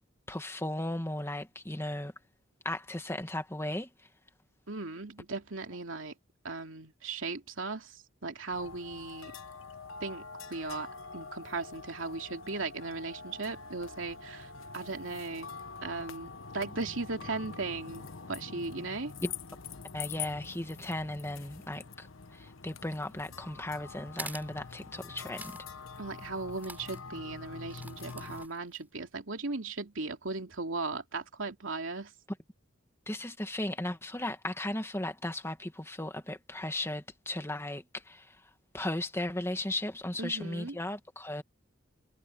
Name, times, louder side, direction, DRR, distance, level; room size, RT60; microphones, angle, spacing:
voice 1, 0.3-2.1 2.6-3.9 19.2-19.3 19.9-25.6 33.1-38.4 38.7-41.4, left 1 dB, 15° left, 1.8 m, -36 dB
voice 2, 4.7-6.1 6.4-9.3 10.0-10.2 10.5-10.9 11.1-15.5 15.8-19.1 26.0-32.1 40.2-40.7, right 3 dB, 75° right, 2.8 m, -37 dB
sound 1, 8.5-28.5, left 5 dB, 80° left, 1.1 m, -45 dB
sound 2, 24.1-24.5 25.4-25.6 25.9-26.0 26.6-27.0 27.6-28.8, right 2 dB, 10° right, 5.5 m, -44 dB
head